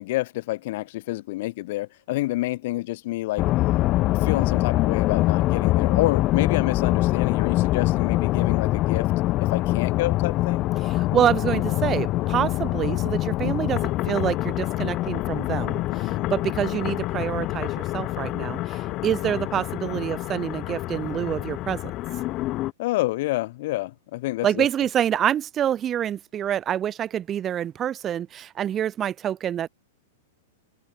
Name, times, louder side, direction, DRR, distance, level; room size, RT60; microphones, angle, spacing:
voice 1, 0.0-3.5 4.2-9.1 9.4-10.7 15.9-16.3 18.9-19.1 22.8-24.7, left 18 dB, 60° left, 1.8 m, -28 dB
sound 1, 3.4-22.7, left 17 dB, 35° left, 0.6 m, -25 dB
voice 2, 10.9-21.8 24.4-29.7, right 10 dB, 25° right, 1.3 m, -27 dB
hypercardioid pair, 125°, 0 cm